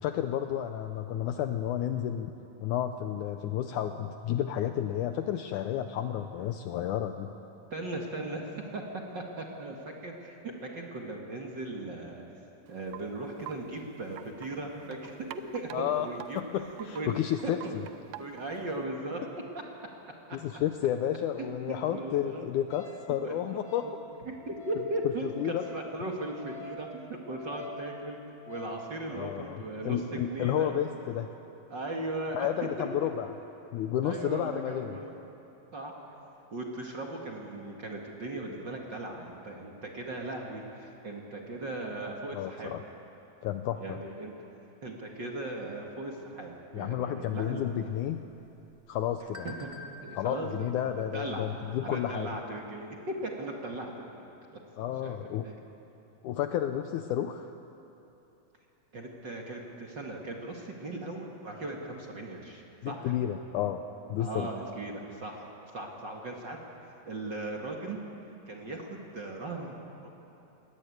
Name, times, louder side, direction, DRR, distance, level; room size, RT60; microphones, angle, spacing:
voice 1, 0.0-2.3 2.6-7.3 15.7-16.1 16.4-17.8 20.3-23.9 25.4-25.6 29.1-31.3 32.3-33.3 33.7-35.0 42.3-42.8 43.4-44.0 46.7-48.2 48.9-49.5 50.2-52.3 54.8-55.5 56.2-57.5 62.8-64.5, left 10 dB, 80° left, 8 dB, 1.9 m, -31 dB
voice 2, 7.7-8.8 9.1-12.2 12.7-15.1 15.5-16.4 16.9-17.1 17.4-17.8 18.2-19.2 20.3-20.4 21.4-22.5 23.2-23.4 23.8-23.9 24.2-28.2 28.5-30.7 31.7-32.5 32.8-32.9 34.0-35.1 35.7-35.9 36.5-42.7 43.8-44.4 44.8-47.6 49.4-49.7 50.0-50.5 50.8-51.5 51.8-54.6 55.0-55.2 55.4-55.6 58.9-63.1 64.2-65.5 65.7-66.6 67.1-68.0 68.5-69.8 70.0-70.1, right 2 dB, 40° right, 0 dB, 1.9 m, -38 dB
Wind chime, 12.7-18.8, right 12 dB, 80° right, 2.1 m, -48 dB
Wind instrument woodwind instrument, 22.7-28.8, left 1 dB, 40° left, 2.7 m, -48 dB
sound 1, 47.3-52.4, left 2 dB, 15° right, 1.4 m, -52 dB
21.5 x 18.5 x 9.3 m, 3.0 s
omnidirectional pair, 4.1 m